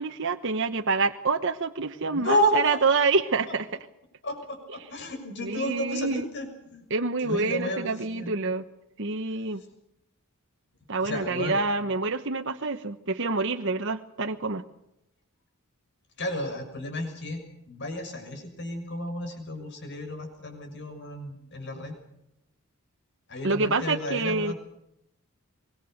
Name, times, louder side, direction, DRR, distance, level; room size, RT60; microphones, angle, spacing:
voice 1, 0.0-3.7 5.4-6.2 6.9-8.6 9.0-9.6 10.9-14.6 23.4-24.5, right 3 dB, 55° right, 5 dB, 1.2 m, -27 dB
voice 2, 2.1-3.0 4.2-6.9 7.2-8.3 9.6-9.7 11.0-11.6 16.2-21.9 23.3-24.5, equal, 50° left, 7 dB, 6.7 m, -31 dB
25.0 x 22.0 x 6.6 m, 0.84 s
head